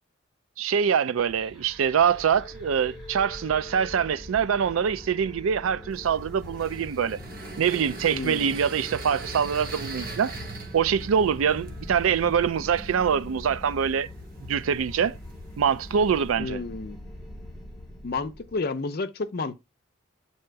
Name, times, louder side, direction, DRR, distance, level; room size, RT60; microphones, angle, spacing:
voice 1, 0.6-7.2 7.6-10.3 10.7-14.1 14.5-15.2 15.6-16.6, right 7 dB, 90° right, 0.4 m, -24 dB
sound 1, 1.2-18.6, left 1 dB, ahead, 1.9 m, -42 dB
sound 2, 5.9-16.3, right 3 dB, 45° right, 0.9 m, -42 dB
voice 2, 8.1-8.6 16.4-17.0 18.0-19.5, left 3 dB, 50° left, 0.5 m, -31 dB
7.6 x 2.8 x 4.5 m
head